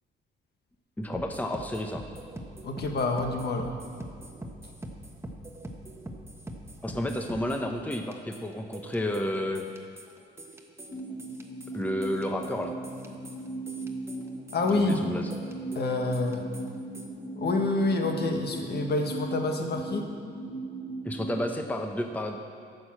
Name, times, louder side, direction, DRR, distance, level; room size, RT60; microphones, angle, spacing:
voice 1, 1.0-2.0 6.8-9.6 11.7-12.7 14.7-15.3 21.0-22.4, left 1 dB, 10° left, 4 dB, 0.8 m, -31 dB
sound 1, 1.0-17.1, right 1 dB, 15° right, 1.2 m, -44 dB
voice 2, 2.6-3.8 14.5-15.0 15.7-16.4 17.4-20.0, left 2 dB, 55° left, 3 dB, 1.4 m, -27 dB
sound 2, 10.9-21.4, right 2 dB, 35° left, 1.6 m, -38 dB
11.0 x 6.5 x 7.5 m, 2.2 s
cardioid pair, 90°, 20 cm